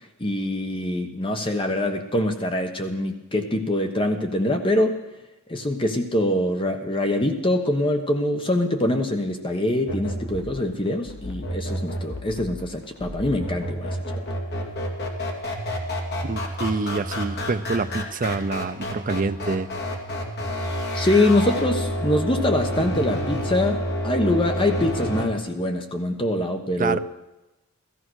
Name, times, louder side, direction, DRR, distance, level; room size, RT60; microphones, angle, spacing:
voice 1, 0.2-5.0 5.5-14.0 20.9-27.0, left 1 dB, 25° left, 5 dB, 1.2 m, -24 dB
sound 1, 9.9-25.3, equal, 50° left, 2.4 m, -29 dB
voice 2, 16.2-19.7 26.8-27.0, right 4 dB, 40° right, 11 dB, 0.6 m, -26 dB
16.0 x 14.0 x 6.4 m, 1.0 s
head